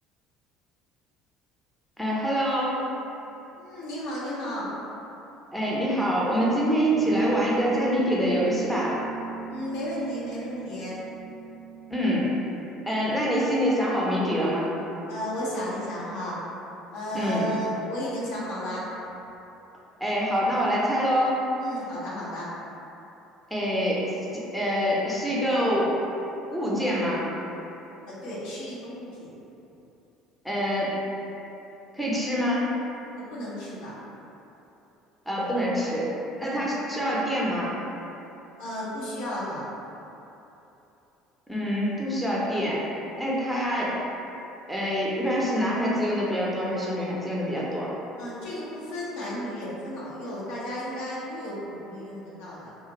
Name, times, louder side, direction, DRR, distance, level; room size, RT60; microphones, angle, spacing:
voice 1, 2.0-2.9 5.5-9.0 11.9-12.3 12.9-14.7 17.1-17.5 20.0-21.4 23.5-24.0 24.3-25.9 26.5-27.2 30.4-31.0 31.9-32.7 35.3-36.1 36.4-37.7 41.5-42.8 43.2-43.9 44.7-47.9, equal, ahead, -6 dB, 0.6 m, -25 dB
voice 2, 3.6-4.7 9.5-10.9 15.1-16.4 16.9-18.8 21.6-22.5 28.1-29.3 33.2-33.9 36.4-36.7 38.6-39.7 48.2-52.7, equal, 70° left, -8 dB, 0.7 m, -34 dB
sound 1, 6.9-13.9, right 5 dB, 90° right, 0.4 m, -38 dB
2.4 x 2.4 x 2.9 m, 3.0 s
hypercardioid pair, 65°, 0 cm